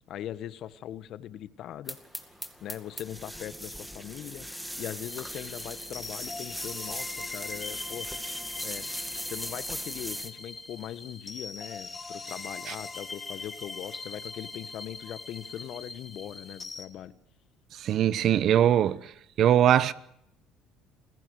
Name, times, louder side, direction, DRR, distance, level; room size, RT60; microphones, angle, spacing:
voice 1, 0.0-2.0 2.6-4.5 4.8-8.1 8.6-17.1, left 11 dB, 60° left, 1.2 m, -40 dB
sound 1, 1.9-10.3, equal, ahead, 2.2 m, -39 dB
sound 2, 5.1-16.9, left 3 dB, 20° left, 2.9 m, -41 dB
voice 2, 17.7-19.1 19.4-19.9, right 10 dB, 55° right, 1.0 m, -22 dB
28.0 x 16.0 x 6.4 m
supercardioid pair, 100°, 0 cm